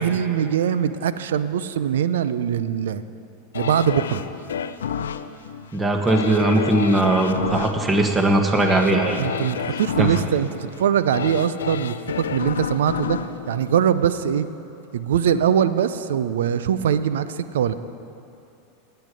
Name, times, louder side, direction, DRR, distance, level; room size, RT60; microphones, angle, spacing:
voice 1, 0.0-3.0 3.5-4.2 9.2-13.2 13.5-14.5 14.9-17.7, right 9 dB, 70° right, 14 dB, 0.5 m, -22 dB
sound 1, 3.5-14.5 14.9-15.0, left 7 dB, 80° left, 0.5 m, -30 dB
voice 2, 5.7-9.2 10.0-10.1, right 2 dB, 20° right, 3 dB, 1.6 m, -19 dB
19.5 x 7.9 x 5.1 m, 2.9 s
hypercardioid pair, 90°, 0 cm